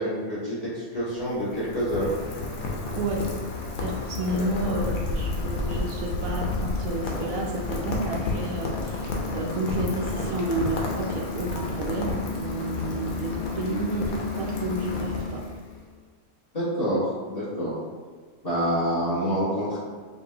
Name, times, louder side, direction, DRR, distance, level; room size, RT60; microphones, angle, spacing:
voice 1, 0.0-2.1 4.1-4.8 16.5-17.8 18.4-19.8, equal, 30° left, -11 dB, 1.7 m, -27 dB
Rain, 1.0-15.8, left 3 dB, 85° left, 1.2 m, -31 dB
voice 2, 3.8-15.4, right 2 dB, 75° right, 0 dB, 1.0 m, -31 dB
5.3 x 2.6 x 2.9 m, 1.5 s
omnidirectional pair, 1.5 m